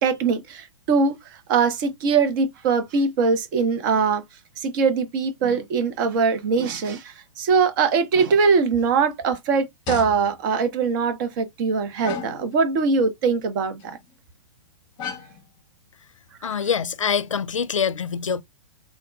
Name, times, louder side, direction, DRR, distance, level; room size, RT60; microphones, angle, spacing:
voice 1, 0.0-4.2 4.6-14.0, right 5 dB, 40° right, 0.8 m, -22 dB
sound 1, 8.7-8.8 9.2-9.3 9.9-10.5 12.0-12.6 13.8-14.1 15.0-15.4 16.5-16.6, left 6 dB, 30° left, 0.9 m, -34 dB
voice 2, 16.4-18.4, left 7 dB, 85° left, 0.4 m, -25 dB
3.5 x 2.2 x 2.4 m
figure-of-eight pair, 115°, 16 cm